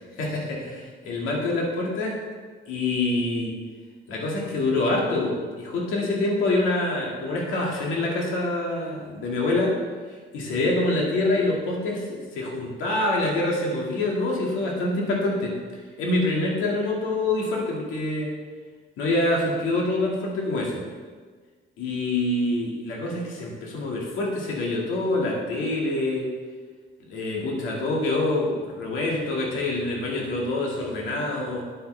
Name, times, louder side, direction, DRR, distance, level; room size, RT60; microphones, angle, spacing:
voice 1, 0.2-2.2 2.7-3.5 4.1-9.7 10.3-15.5 16.0-18.3 19.0-20.8 21.8-26.3 27.1-31.6, left 2 dB, 90° left, -2 dB, 2.0 m, -26 dB
9.2 x 7.8 x 3.3 m, 1.5 s
cardioid pair, 90°, 20 cm